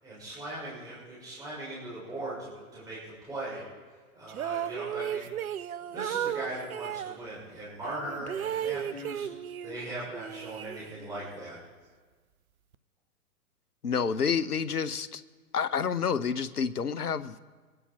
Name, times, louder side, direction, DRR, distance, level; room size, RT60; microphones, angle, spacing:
voice 1, 0.0-3.6 4.1-5.3 5.9-9.3 9.6-11.6, right 1 dB, 10° right, 6.2 m, -39 dB
sound 1, 4.3-7.2 7.8-9.8 10.1-11.2, right 10 dB, 70° right, 0.7 m, -35 dB
voice 2, 13.8-15.2 15.5-17.4, left 6 dB, 80° left, 1.0 m, -29 dB
24.5 x 10.0 x 4.5 m
figure-of-eight pair, 115°, 45 cm